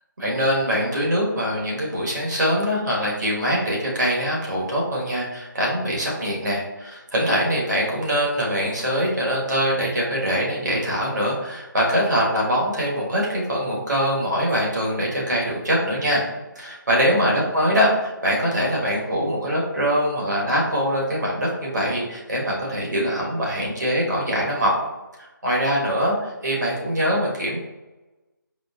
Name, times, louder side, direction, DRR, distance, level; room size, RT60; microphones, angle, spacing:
voice 1, 0.2-16.2 16.5-24.7 25.4-27.6, equal, 60° right, -3 dB, 1.2 m, -23 dB
5.1 x 2.0 x 2.3 m, 1.1 s
figure-of-eight pair, 155°, 11 cm